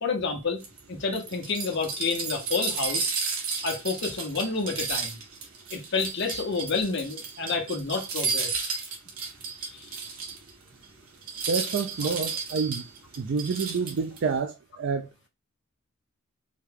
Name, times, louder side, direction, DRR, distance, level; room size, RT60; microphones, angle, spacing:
voice 1, 0.0-0.6 0.9-3.1 3.6-5.2 5.7-8.9 9.6-9.9, left 4 dB, 55° left, 1.0 m, -29 dB
sound 1, 0.6-10.5 10.8-10.9 11.2-14.2, right 5 dB, 85° right, 1.3 m, -32 dB
voice 2, 11.5-12.9 13.2-15.3, right 5 dB, 60° right, 0.4 m, -28 dB
4.6 x 2.3 x 3.4 m
head